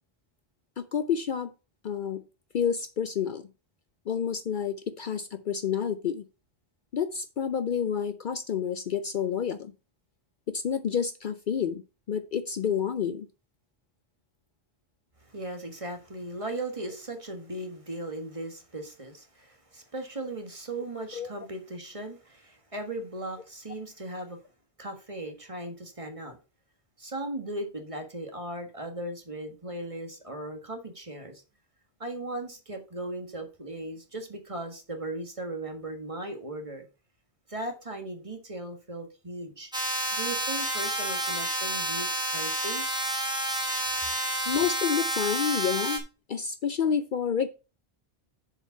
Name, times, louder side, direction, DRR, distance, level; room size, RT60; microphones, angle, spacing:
voice 1, 0.9-1.5 1.8-2.2 2.5-3.4 4.1-6.2 6.9-9.7 10.5-11.8 12.1-13.3 21.2-21.3 44.5-46.0 46.3-47.5, left 7 dB, 60° left, 0.7 m, -29 dB
voice 2, 15.2-24.4 24.8-26.4 27.0-31.4 32.0-36.8 37.5-39.7 40.1-42.8, right 1 dB, 30° right, 1.5 m, -37 dB
sound 1, 39.7-46.0, right 1 dB, 5° right, 1.5 m, -29 dB
6.9 x 5.0 x 5.6 m
omnidirectional pair, 1.1 m